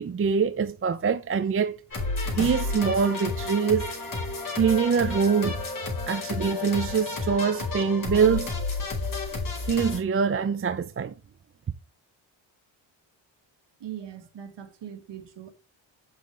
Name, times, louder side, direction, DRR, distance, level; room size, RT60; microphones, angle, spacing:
voice 1, 0.0-1.8 2.3-3.9 4.5-5.7 6.1-8.5 9.7-11.1, right 6 dB, 25° right, 0.7 m, -24 dB
sound 1, 1.9-10.0, left 3 dB, 40° left, 5.1 m, -31 dB
voice 2, 13.8-15.5, right 10 dB, 60° right, 2.1 m, -40 dB
7.6 x 6.4 x 3.4 m
cardioid pair, 75°, 48 cm